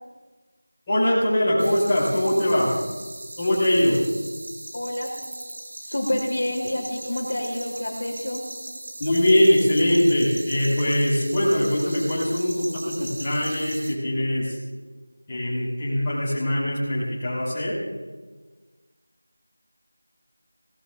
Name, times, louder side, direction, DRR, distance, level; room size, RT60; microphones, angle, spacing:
voice 1, 0.9-2.7 3.4-4.0 9.0-14.6 15.3-17.7, left 1 dB, 10° left, -12 dB, 5.1 m, -22 dB
sound 1, 1.6-13.9, right 1 dB, 40° right, 1.7 m, -39 dB
voice 2, 4.7-5.2 5.8-8.4, left 1 dB, 45° left, -1 dB, 3.3 m, -28 dB
26.0 x 19.0 x 2.6 m, 1.3 s
figure-of-eight pair, 180°, 0 cm